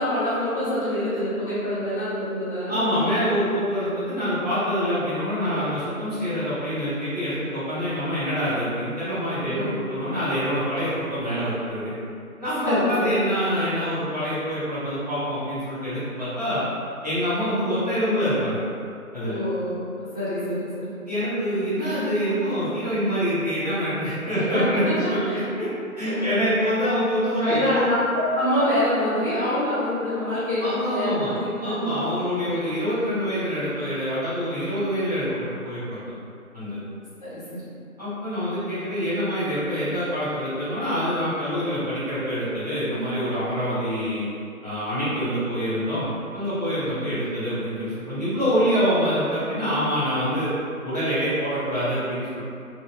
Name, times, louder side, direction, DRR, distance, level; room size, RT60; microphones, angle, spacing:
voice 1, 0.0-2.9 9.4-9.9 12.6-13.2 19.2-21.0 24.3-24.6 25.3-25.4 26.0-26.5 27.4-32.1 32.4-32.5 37.2-37.7, left 1 dB, 35° left, -15 dB, 1.0 m, -26 dB
voice 2, 2.7-11.9 12.4-16.6 17.0-18.6 19.1-19.4 21.1-25.7 26.0-27.8 30.6-31.3 31.6-36.0 36.5-36.8 38.0-44.3 44.6-46.1 46.3-50.5 50.8-52.4, equal, 25° right, -15 dB, 1.0 m, -25 dB
2.9 x 2.4 x 2.5 m, 2.4 s
figure-of-eight pair, 170°, 44 cm